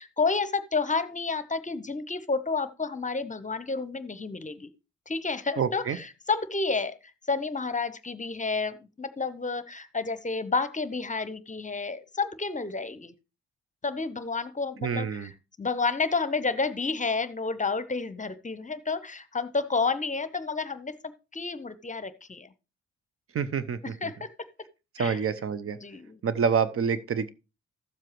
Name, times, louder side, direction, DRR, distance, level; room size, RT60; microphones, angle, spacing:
voice 1, 0.0-4.7 5.1-13.1 13.8-15.3 15.6-22.5 23.8-24.3 25.0-25.2 25.8-26.2, left 4 dB, 25° left, 14 dB, 0.9 m, -30 dB
voice 2, 5.6-6.0 14.8-15.3 23.3-23.9 25.0-25.8 26.2-27.3, right 6 dB, 45° right, 15 dB, 0.8 m, -27 dB
13.0 x 7.4 x 3.1 m, 0.29 s
hypercardioid pair, 45°, 32 cm